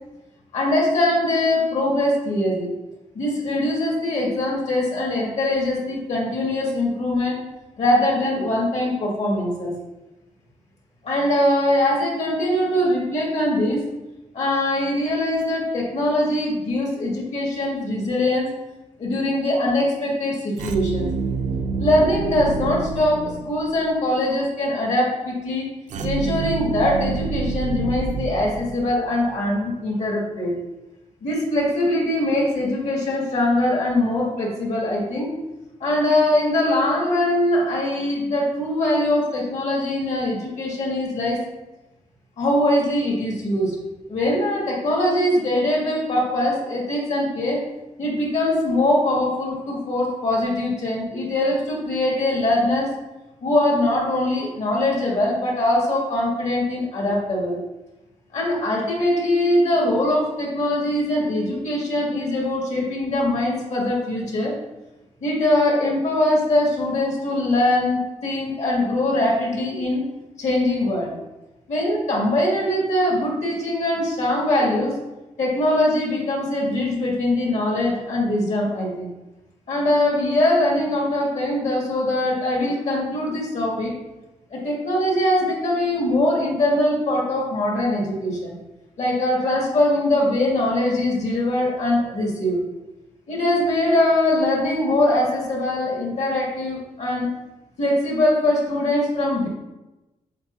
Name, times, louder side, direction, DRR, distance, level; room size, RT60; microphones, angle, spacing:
voice 1, 0.5-2.7 3.1-7.4 7.8-9.7 11.0-13.8 14.3-18.5 19.0-21.1 21.8-25.7 26.0-30.5 31.2-35.3 35.8-41.4 42.4-43.8 44.1-47.6 48.0-52.9 53.4-57.6 58.3-64.5 65.2-70.0 70.4-71.1 71.7-74.9 75.4-79.1 79.7-83.9 84.5-88.5 89.0-92.6 93.3-97.3 97.8-99.5, left 1 dB, 65° left, -3 dB, 2.1 m, -22 dB
sound 1, 20.6-23.9 25.9-29.2, right 5 dB, 75° right, 0.5 m, -28 dB
8.0 x 4.4 x 2.7 m, 1.0 s
cardioid pair, 100°, 13 cm